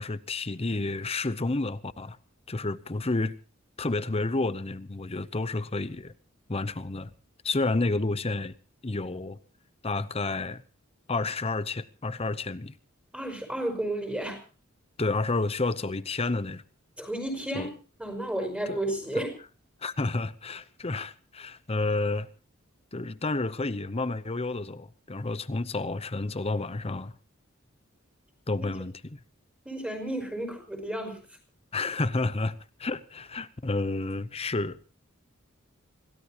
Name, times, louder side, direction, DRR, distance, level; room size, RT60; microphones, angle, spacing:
voice 1, 0.0-2.2 2.5-3.3 3.8-6.1 6.5-7.1 7.4-8.5 8.8-9.4 9.8-10.6 11.1-12.7 15.0-16.6 17.5-17.7 18.7-18.8 19.2-19.3 19.8-22.3 22.9-27.1 28.5-29.2 31.7-34.8, left 3 dB, 30° left, 0.8 m, -30 dB
voice 2, 13.1-14.4 17.0-17.7 18.0-19.3 28.6-28.7 29.7-31.2, right 1 dB, 5° right, 5.5 m, -32 dB
26.5 x 17.0 x 3.0 m
head